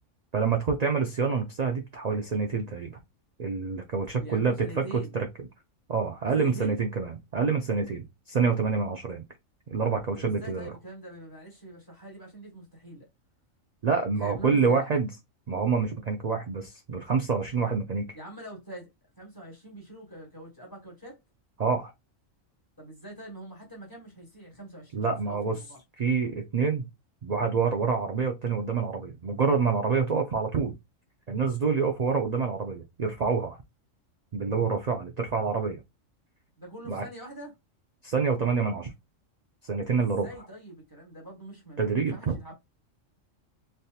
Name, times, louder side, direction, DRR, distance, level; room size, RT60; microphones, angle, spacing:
voice 1, 0.3-3.0 3.4-5.3 5.9-9.2 9.7-10.7 13.8-15.1 15.5-18.2 21.6-21.9 24.9-25.6 26.0-26.9 27.2-30.7 31.3-33.6 34.3-35.8 36.9-37.0 38.0-38.9 39.6-40.3 41.8-42.4, right 5 dB, 80° right, 0.3 m, -27 dB
voice 2, 4.2-5.2 6.3-6.8 10.1-13.1 14.2-14.8 18.1-18.9 19.1-21.2 22.8-25.8 36.6-37.5 40.0-42.5, right 1 dB, 15° left, 1.3 m, -44 dB
3.4 x 2.7 x 2.3 m
omnidirectional pair, 1.4 m